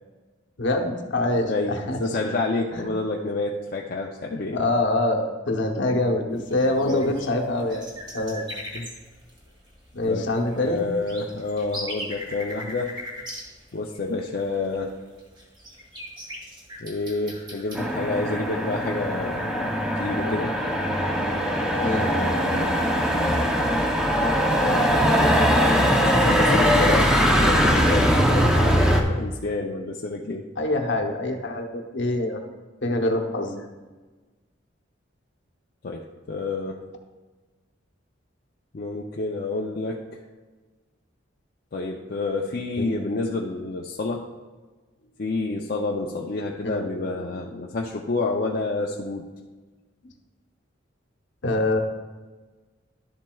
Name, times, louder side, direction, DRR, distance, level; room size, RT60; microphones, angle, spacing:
voice 1, 0.6-2.0 2.7-2.9 4.5-7.9 8.1-8.5 9.9-10.9 21.8-22.1 30.6-32.4 32.8-33.6 42.8-42.9 46.6-46.9 51.4-51.8, left 2 dB, 65° left, 3 dB, 0.9 m, -25 dB
voice 2, 1.5-4.6 6.8-7.1 8.7-8.9 10.1-10.3 10.6-12.9 13.7-14.9 16.8-19.7 20.0-20.6 21.9-22.7 24.5-27.1 27.4-30.5 35.8-36.8 38.7-40.2 41.7-44.3 45.2-49.3, left 3 dB, 45° left, -1 dB, 0.5 m, -29 dB
sound 1, 6.3-18.4, equal, 25° right, 1.5 m, -40 dB
Motor vehicle (road), 17.8-29.0, equal, 5° right, 0.6 m, -21 dB
12.0 x 7.4 x 2.3 m, 1.3 s
head